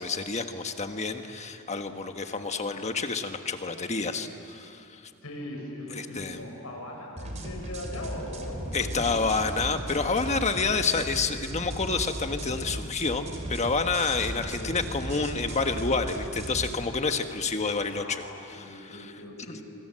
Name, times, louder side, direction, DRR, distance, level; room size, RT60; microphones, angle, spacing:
voice 1, 0.0-5.0 6.0-6.4 8.7-13.2 13.5-18.2 18.5-19.1 19.5-19.6, left 4 dB, 30° left, 6 dB, 1.4 m, -29 dB
voice 2, 5.2-9.2 14.0-14.8 17.0-17.1 17.9-19.6, left 1 dB, 80° left, 0 dB, 6.7 m, -40 dB
sound 1, 7.2-16.7, right 1 dB, 35° right, 3.3 m, -36 dB
26.5 x 25.0 x 7.6 m, 2.6 s
head